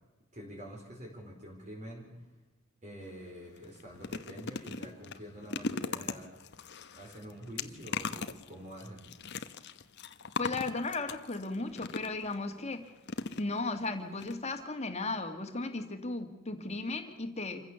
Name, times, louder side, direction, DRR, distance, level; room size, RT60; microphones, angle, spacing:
voice 1, 0.3-2.2 2.8-6.3 6.9-9.1, equal, 35° right, -2 dB, 4.7 m, -46 dB
sound 1, 3.0-3.2 3.6-12.4 13.1-13.9 14.2-14.3 14.6-14.7, left 4 dB, 50° left, 1.0 m, -39 dB
voice 2, 10.4-12.8 13.4-17.6, left 3 dB, 30° left, 7 dB, 2.1 m, -35 dB
27.0 x 15.5 x 7.0 m, 1.1 s
head